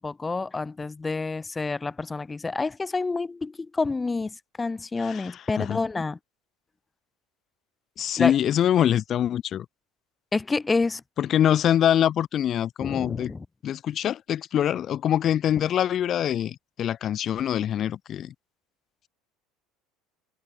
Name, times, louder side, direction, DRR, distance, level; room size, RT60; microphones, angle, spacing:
voice 1, 0.0-6.2 8.2-8.3 10.3-11.0 12.8-13.4, left 3 dB, 15° left, 3.5 m, -28 dB
voice 2, 5.0-5.8 8.0-9.6 11.2-13.3 13.6-18.3, left 10 dB, 40° left, 6.3 m, -24 dB
cardioid pair, 140°, 0 cm